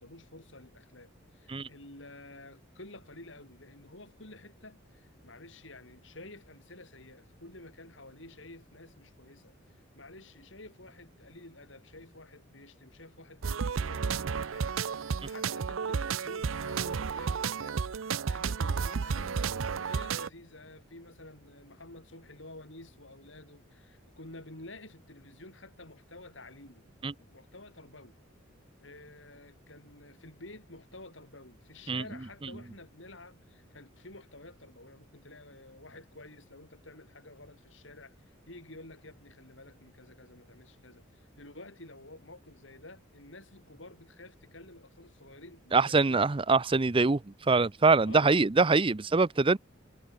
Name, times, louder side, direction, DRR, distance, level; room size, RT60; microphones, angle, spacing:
voice 1, 0.0-26.9 27.3-28.2 28.8-46.2 48.0-48.4, left 2 dB, 65° left, 7.4 m, -51 dB
sound 1, 13.4-20.3, right 6 dB, 75° right, 0.5 m, -32 dB
voice 2, 45.7-49.6, right 3 dB, 25° right, 0.6 m, -24 dB
head